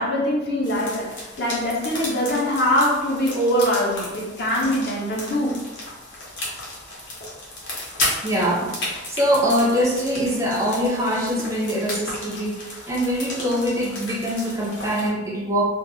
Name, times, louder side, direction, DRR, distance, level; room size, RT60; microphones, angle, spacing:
voice 1, 0.0-5.6, equal, 55° left, -3 dB, 0.7 m, -23 dB
sound 1, 0.6-15.1, left 1 dB, 85° left, 0.8 m, -34 dB
voice 2, 8.2-15.6, equal, 15° right, -3 dB, 0.4 m, -23 dB
2.3 x 2.2 x 3.0 m, 1.0 s
head